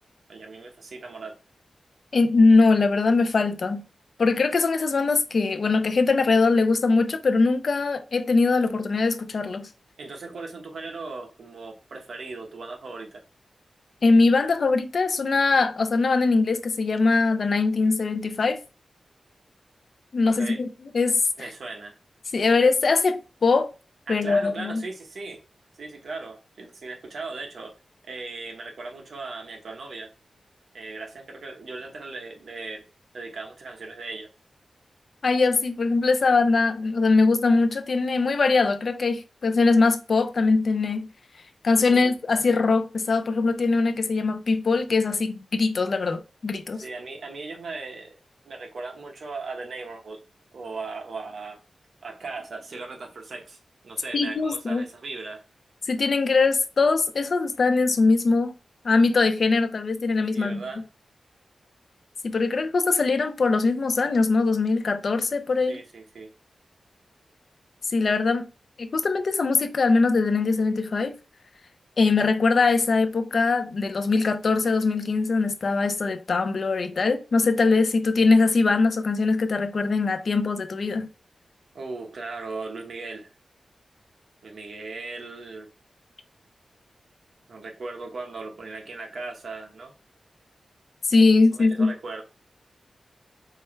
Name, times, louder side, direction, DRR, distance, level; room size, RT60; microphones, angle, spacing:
voice 1, 0.3-1.3 10.0-13.2 20.2-20.6 21.4-22.0 24.1-25.4 25.8-27.7 28.1-30.1 30.7-32.9 33.1-34.3 41.9-42.1 46.8-48.2 48.4-50.2 50.5-51.6 52.0-55.4 60.3-60.8 65.7-66.3 81.7-83.3 84.4-85.7 87.5-89.9 91.6-92.2, right 3 dB, 65° right, 1.1 m, -38 dB
voice 2, 2.1-3.8 4.2-9.7 14.0-18.6 20.1-20.7 20.9-21.2 22.3-23.7 24.1-24.8 35.2-41.1 41.6-46.8 54.1-54.8 55.9-58.5 58.8-60.6 62.2-65.8 67.9-68.5 68.8-71.2 72.0-81.1 91.1-91.9, left 3 dB, 50° left, 0.5 m, -22 dB
4.6 x 3.4 x 3.2 m
wide cardioid pair, 155°, 0 cm